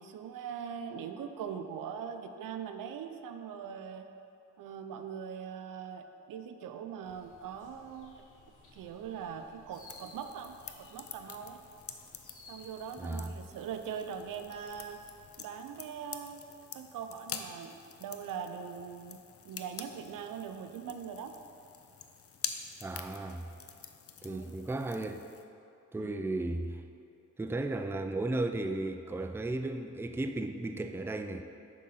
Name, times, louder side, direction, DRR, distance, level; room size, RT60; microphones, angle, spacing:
voice 1, 0.0-4.1 4.6-8.2 8.7-11.6 12.5-15.0 15.4-16.4 16.7-19.2 19.4-21.3 24.3-24.5 26.0-26.2, right 7 dB, 80° right, 7 dB, 0.5 m, -41 dB
sound 1, 7.0-15.3, left 2 dB, 70° left, 1.3 m, -58 dB
sound 2, 9.7-25.4, left 7 dB, 45° left, 0.6 m, -47 dB
voice 2, 13.0-13.3 22.8-23.5 24.2-25.2 25.9-26.8 27.4-31.4, right 2 dB, 5° right, 6 dB, 0.4 m, -35 dB
7.4 x 3.8 x 5.6 m, 2.6 s
cardioid pair, 60°, 32 cm